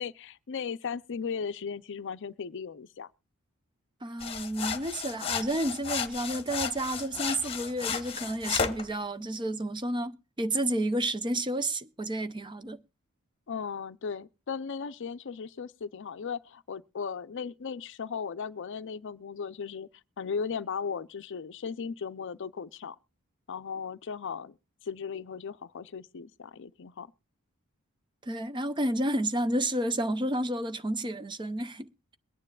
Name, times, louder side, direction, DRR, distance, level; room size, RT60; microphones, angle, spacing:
voice 1, 0.0-3.1 13.5-19.9 20.2-23.0 23.5-24.6 24.8-27.1, left 6 dB, 60° left, 0.5 m, -36 dB
voice 2, 4.0-12.8 28.2-32.2, right 1 dB, 20° right, 0.6 m, -31 dB
sound 1, 4.2-8.9, left 6 dB, 25° left, 1.1 m, -33 dB
22.0 x 9.8 x 2.3 m
head